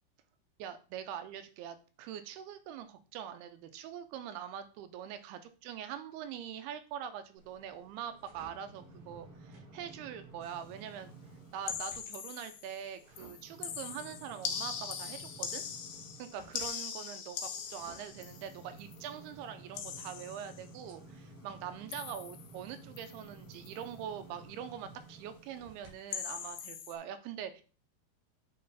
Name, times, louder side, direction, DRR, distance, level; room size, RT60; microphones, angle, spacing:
voice 1, 0.6-11.1 11.5-15.6 16.2-27.6, right 9 dB, 90° right, 10 dB, 2.7 m, -43 dB
sound 1, 7.4-12.0 12.4-25.9 26.4-26.5, right 2 dB, 60° right, 3.7 m, -54 dB
sound 2, 11.7-12.8 13.2-19.1 19.8-20.7 21.9-22.6 23.0-23.3 23.5-23.8 26.1-27.0, left 7 dB, 80° left, 2.8 m, -41 dB
8.7 x 3.9 x 4.1 m, 0.37 s
omnidirectional pair, 4.5 m